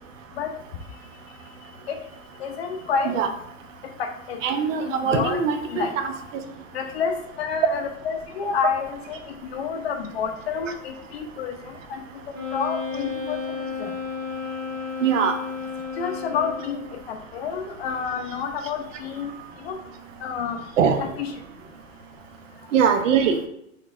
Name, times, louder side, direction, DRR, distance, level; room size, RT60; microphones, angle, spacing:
voice 1, 2.4-3.2 4.0-4.4 4.8-6.0 6.7-12.0 12.5-13.9 16.0-19.3 19.6-19.8 20.2-20.6 20.9-21.4, left 6 dB, 50° left, 5 dB, 0.6 m, -29 dB
voice 2, 4.4-6.1 15.0-15.4 20.8-21.0 22.7-23.4, right 7 dB, 70° right, 7 dB, 0.7 m, -21 dB
Wind instrument woodwind instrument, 12.3-17.0, left 5 dB, 20° right, 0.6 m, -32 dB
4.2 x 3.1 x 2.4 m, 0.76 s
hypercardioid pair, 160°, 40 cm